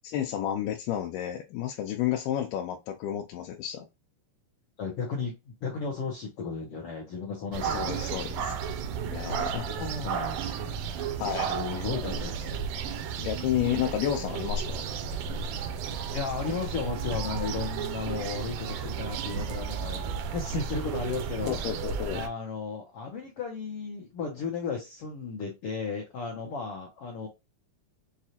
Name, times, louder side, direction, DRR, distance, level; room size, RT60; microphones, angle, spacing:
voice 1, 0.0-3.9 7.6-8.5 9.1-9.8 11.2-11.9 13.2-14.9 21.5-22.2, left 11 dB, 85° left, 2.2 m, -31 dB
voice 2, 4.8-5.3 5.6-8.0 8.5-8.6 9.4-12.9 16.1-21.6 22.1-27.3, left 5 dB, 70° left, 1.4 m, -35 dB
sound 1, 7.5-22.3, right 6 dB, 80° right, 2.1 m, -33 dB
6.3 x 2.4 x 2.8 m
omnidirectional pair, 3.8 m